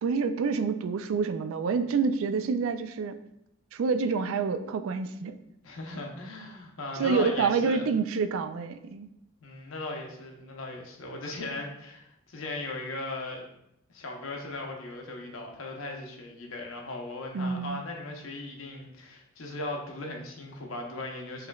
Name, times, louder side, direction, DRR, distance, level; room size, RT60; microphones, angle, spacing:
voice 1, 0.0-3.1 3.7-5.4 7.0-9.1 17.3-17.8, right 5 dB, 75° right, 9 dB, 0.3 m, -27 dB
voice 2, 5.6-7.9 9.4-13.4 13.9-21.5, left 2 dB, 80° left, 1 dB, 0.8 m, -38 dB
4.8 x 3.1 x 2.3 m, 0.81 s
head